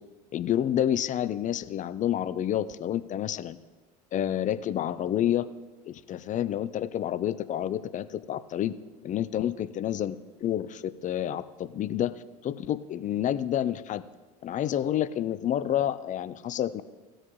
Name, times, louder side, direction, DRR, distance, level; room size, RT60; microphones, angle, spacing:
voice 1, 0.3-3.6 4.1-5.5 5.8-8.7 9.0-10.2 10.4-14.0 14.4-16.8, left 11 dB, 40° left, 14 dB, 0.5 m, -29 dB
18.0 x 6.4 x 3.1 m, 1.2 s
hypercardioid pair, 70°, 20 cm